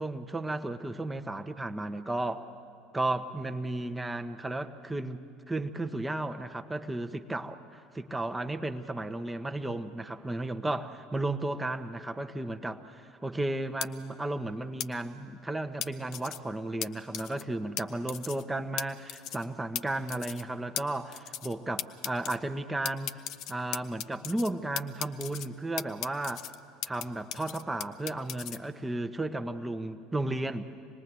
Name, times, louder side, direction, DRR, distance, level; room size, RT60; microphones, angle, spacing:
voice 1, 0.0-2.4 2.9-5.2 5.5-23.2 23.5-26.5 26.8-30.7, right 2 dB, 10° right, 8 dB, 1.1 m, -34 dB
sound 1, 13.8-13.9 14.8-14.9 15.8-16.4 16.8-16.9 17.1-17.4 17.8-17.9 18.1-18.4 18.8-18.9 19.1-19.4 19.8-19.9 20.1-20.4 20.8-20.9 21.1-21.5 21.8-22.4 22.8-24.5 24.8-25.5 25.8-27.0 27.3-28.6, left 11 dB, 50° left, 0.7 m, -36 dB
25.5 x 20.5 x 8.3 m, 2.2 s
figure-of-eight pair, 65°, 0 cm